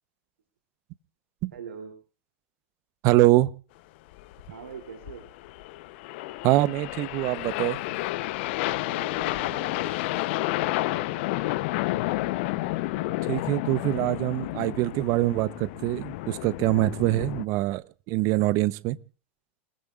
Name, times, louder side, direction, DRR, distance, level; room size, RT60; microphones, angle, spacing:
voice 1, 1.5-1.9 4.5-5.3 8.8-10.0 10.6-11.3, right 6 dB, 75° right, 3.0 m, -43 dB
voice 2, 3.0-3.5 6.4-7.8 13.3-19.0, right 18 dB, 45° right, 0.9 m, -24 dB
sound 1, 4.1-17.4, left 18 dB, 55° left, 0.8 m, -31 dB
29.0 x 20.0 x 2.5 m
figure-of-eight pair, 90°, 7 cm